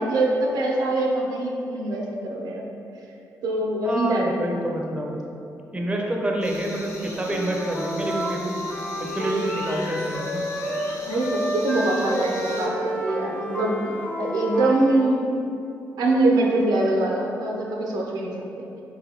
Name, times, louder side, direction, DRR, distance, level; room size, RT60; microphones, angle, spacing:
voice 1, 0.0-2.7 3.4-4.5 11.1-15.3 16.0-18.8, right 2 dB, 85° right, -1 dB, 0.5 m, -23 dB
voice 2, 3.8-5.2 5.7-8.6 9.0-10.5, right 1 dB, 15° right, 0 dB, 0.5 m, -27 dB
sound 1, 6.4-12.7, left 1 dB, 50° left, 1.0 m, -40 dB
Wind instrument woodwind instrument, 7.2-10.9 11.2-15.0, equal, 30° left, 0.6 m, -30 dB
3.9 x 2.6 x 2.8 m, 2.7 s
cardioid pair, 75°, 7 cm